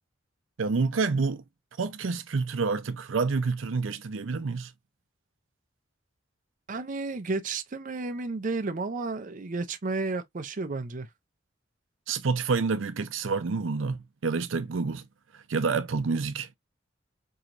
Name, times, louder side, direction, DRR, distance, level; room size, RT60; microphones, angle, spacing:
voice 1, 0.6-1.4 1.8-4.7 12.1-15.1 15.3-16.5, right 4 dB, 85° right, 0.6 m, -28 dB
voice 2, 6.7-11.1, right 3 dB, 45° right, 0.5 m, -32 dB
4.6 x 3.0 x 2.5 m
head